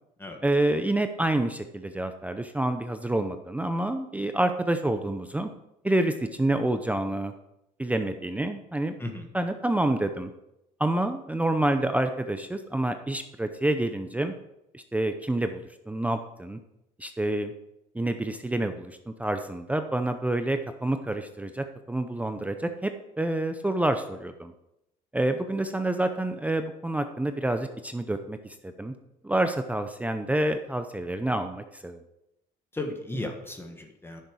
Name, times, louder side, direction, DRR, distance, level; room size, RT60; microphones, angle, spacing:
voice 1, 0.4-5.5 5.8-7.3 7.8-8.9 9.3-10.3 10.8-14.3 14.7-15.6 15.9-16.6 17.0-17.5 17.9-22.9 23.2-24.5 25.1-28.9 29.2-32.0, right 1 dB, 10° right, 7 dB, 0.6 m, -28 dB
voice 2, 32.7-34.2, left 2 dB, 15° left, 3 dB, 1.4 m, -35 dB
10.0 x 6.9 x 4.8 m, 0.86 s
cardioid pair, 110°, 17 cm